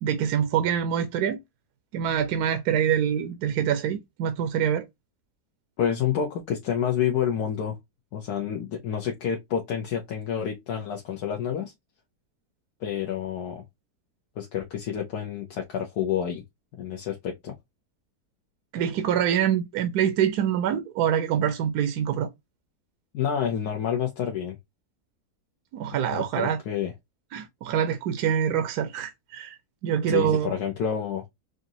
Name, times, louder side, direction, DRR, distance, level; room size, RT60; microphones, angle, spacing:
voice 1, 0.0-1.4 1.9-4.8 18.7-22.3 25.7-26.6 27.3-29.6 29.8-30.6, right 9 dB, 80° right, 1.2 m, -25 dB
voice 2, 5.8-7.8 8.1-11.7 12.8-13.6 14.4-16.4 16.8-17.6 23.1-24.6 26.1-26.9 30.1-31.2, left 8 dB, 75° left, 1.3 m, -28 dB
5.0 x 2.5 x 2.7 m
omnidirectional pair, 1.7 m